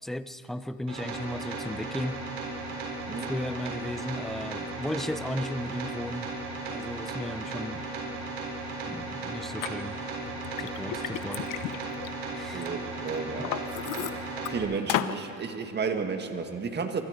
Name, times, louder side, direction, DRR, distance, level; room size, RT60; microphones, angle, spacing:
voice 1, 0.0-2.2 3.1-6.3 6.7-7.8 8.9-10.0 10.6-11.6 12.3-12.7 13.4-13.5, left 1 dB, ahead, 12 dB, 0.6 m, -35 dB
sound 1, 0.9-14.6, right 3 dB, 65° right, 7.6 m, -36 dB
Liquid, 9.6-9.7 10.3-12.7 13.1-14.5 14.9-15.2, left 12 dB, 55° left, 1.0 m, -33 dB
voice 2, 12.5-13.6 14.5-17.0, right 5 dB, 25° right, 5 dB, 1.9 m, -32 dB
25.5 x 25.0 x 5.2 m, 2.7 s
cardioid pair, 130°, 38 cm